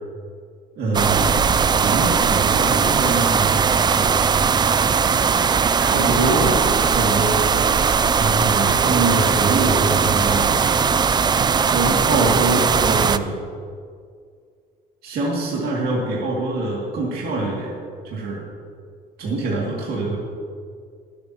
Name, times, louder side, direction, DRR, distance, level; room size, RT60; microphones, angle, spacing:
voice 1, 0.8-3.6 5.8-7.4 8.1-10.6 11.7-13.4 15.0-17.7 18.0-18.4 19.2-20.2, right 2 dB, 65° right, -4 dB, 2.4 m, -24 dB
sound 1, 0.9-13.2, right 6 dB, 25° right, 0.4 m, -19 dB
22.5 x 8.7 x 3.0 m, 2.2 s
cardioid pair, 110°, 17 cm